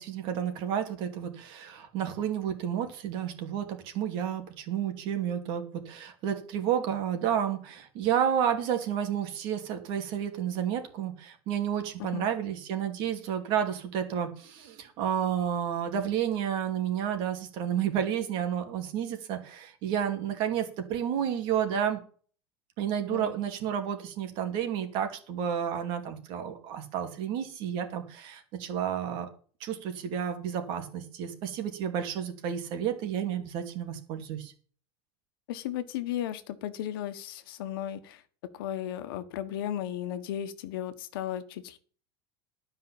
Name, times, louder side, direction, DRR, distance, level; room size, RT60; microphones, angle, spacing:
voice 1, 0.0-22.0 22.8-29.3 29.6-34.5, right 9 dB, 40° right, 6 dB, 2.5 m, -31 dB
voice 2, 35.5-38.2 38.5-41.8, left 11 dB, 70° left, 11 dB, 1.4 m, -35 dB
12.5 x 5.7 x 7.3 m, 0.43 s
supercardioid pair, 175°, 13 cm